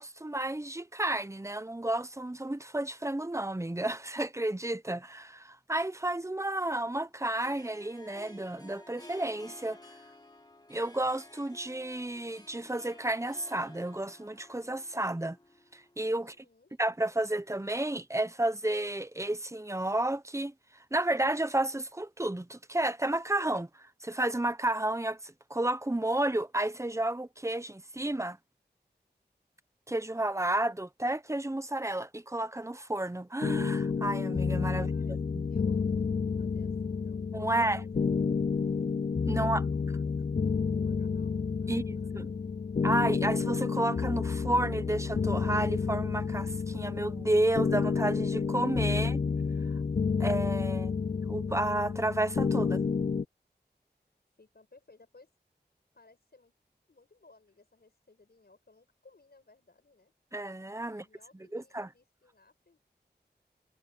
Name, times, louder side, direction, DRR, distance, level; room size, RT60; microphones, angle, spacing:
voice 1, 0.0-9.8 10.7-15.4 15.7-16.3 16.8-20.5 20.9-28.4 29.9-34.9 35.3-35.4 37.3-37.8 39.3-39.9 41.7-42.3 42.8-49.2 50.2-50.9 51.3-52.8 60.3-61.0 61.5-61.9, right 1 dB, 15° right, 0.9 m, -31 dB
Harp, 6.0-16.4, left 2 dB, 25° left, 2.7 m, -54 dB
voice 2, 16.2-16.8 34.7-38.7 39.3-42.4 49.3-49.4 54.4-55.3 55.9-56.5 56.9-60.1 60.8-62.8, left 3 dB, 65° left, 6.3 m, -62 dB
sound 1, 33.4-53.2, left 5 dB, 45° left, 0.4 m, -30 dB
wide cardioid pair, 70°, 18 cm